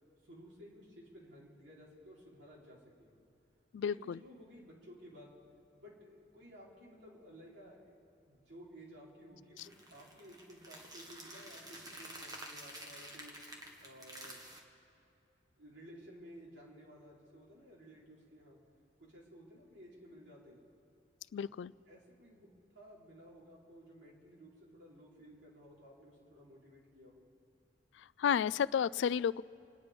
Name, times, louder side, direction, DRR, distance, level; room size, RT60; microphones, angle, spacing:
voice 1, 0.2-3.1 3.8-5.3 5.7-8.0 8.3-13.4 13.8-14.4 15.6-18.6 19.0-20.7 21.4-21.5 21.9-27.3, equal, 70° right, -5 dB, 4.2 m, -55 dB
voice 2, 3.7-4.2 21.3-21.7 28.2-29.4, left 7 dB, 75° left, 20 dB, 0.3 m, -31 dB
sound 1, 9.6-14.6, right 1 dB, 20° right, 1.7 m, -50 dB
27.0 x 9.8 x 5.2 m, 2.7 s
head